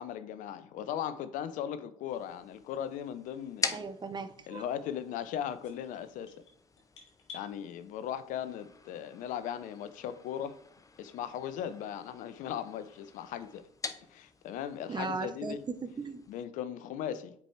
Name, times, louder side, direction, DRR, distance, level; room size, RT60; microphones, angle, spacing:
voice 1, 0.0-3.8 4.5-6.3 7.3-10.6 11.0-13.7 14.1-15.6 16.3-17.3, left 9 dB, 65° left, 0.5 m, -38 dB
sound 1, 2.1-16.4, left 4 dB, 25° left, 0.7 m, -45 dB
voice 2, 3.7-4.6 14.9-16.2, right 4 dB, 30° right, 0.8 m, -37 dB
sound 2, 5.6-7.5, left 4 dB, 90° left, 1.2 m, -51 dB
7.5 x 4.6 x 3.3 m
hypercardioid pair, 60°, 15 cm